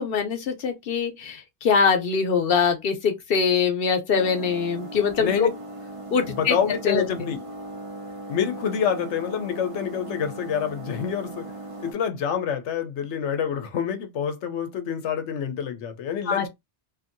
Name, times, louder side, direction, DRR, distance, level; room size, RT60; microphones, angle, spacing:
voice 1, 0.0-5.5 6.1-6.6 6.8-7.0 16.3-16.5, left 6 dB, 60° left, 0.9 m, -23 dB
sound 1, 4.1-11.9, right 2 dB, 40° right, 0.6 m, -38 dB
voice 2, 5.2-5.5 6.3-7.4 8.3-11.5 11.8-16.5, left 7 dB, 85° left, 1.0 m, -27 dB
2.7 x 2.6 x 2.5 m
omnidirectional pair, 1.1 m